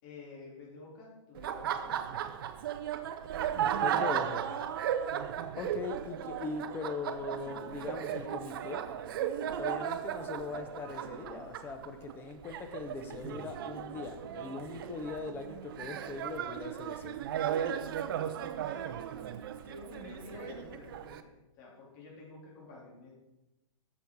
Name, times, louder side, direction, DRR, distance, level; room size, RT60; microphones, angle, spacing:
voice 1, 0.0-2.0 3.5-4.0 4.4-4.7 16.4-16.5 18.6-19.0 19.6-23.1, left 3 dB, 35° left, -4 dB, 3.3 m, -50 dB
Laughter, 1.3-21.2, right 9 dB, 45° right, 0.6 m, -36 dB
voice 2, 3.8-4.4 5.6-8.8 9.6-17.2, left 4 dB, 10° left, 7 dB, 0.6 m, -40 dB
8.6 x 6.9 x 4.7 m, 1.0 s
hypercardioid pair, 150°, 17 cm